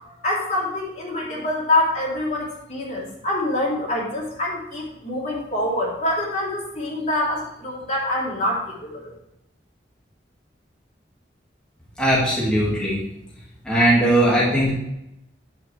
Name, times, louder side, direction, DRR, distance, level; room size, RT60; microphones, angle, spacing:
voice 1, 0.2-9.1, left 1 dB, 40° left, -4 dB, 3.3 m, -25 dB
voice 2, 12.0-13.0 13.7-14.7, right 1 dB, 5° left, -7 dB, 2.0 m, -19 dB
9.1 x 8.2 x 3.3 m, 0.83 s
head